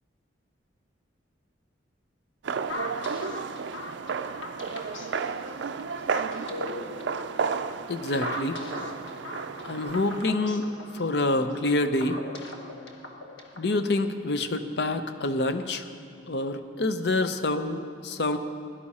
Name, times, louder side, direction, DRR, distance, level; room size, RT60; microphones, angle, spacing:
sound 1, 2.4-10.3, right 5 dB, 70° right, 0.4 m, -33 dB
sound 2, 2.7-13.7, left 2 dB, 80° left, 1.2 m, -39 dB
voice 1, 7.9-8.6 9.6-10.7 10.9-12.2 13.6-15.8 16.3-18.4, left 2 dB, 60° left, 9 dB, 0.6 m, -27 dB
16.5 x 11.5 x 4.2 m, 2.5 s
head